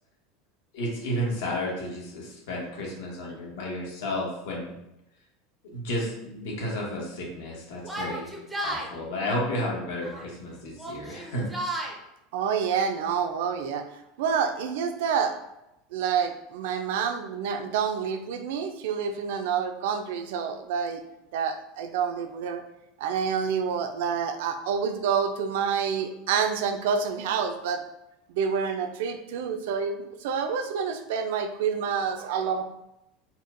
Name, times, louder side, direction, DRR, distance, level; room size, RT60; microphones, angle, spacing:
voice 1, 0.7-4.7 5.7-8.3 8.6-11.9, left 1 dB, 85° left, -3 dB, 1.2 m, -32 dB
Yell, 7.8-8.9 9.9-10.3 10.7-11.9, right 1 dB, 5° right, 0.4 m, -33 dB
voice 2, 12.3-13.9 14.2-15.3 15.9-21.0 21.3-22.6 23.0-27.8 28.3-32.6, right 6 dB, 75° right, 7 dB, 0.4 m, -28 dB
4.1 x 2.2 x 2.5 m, 0.86 s
supercardioid pair, 170°, 0 cm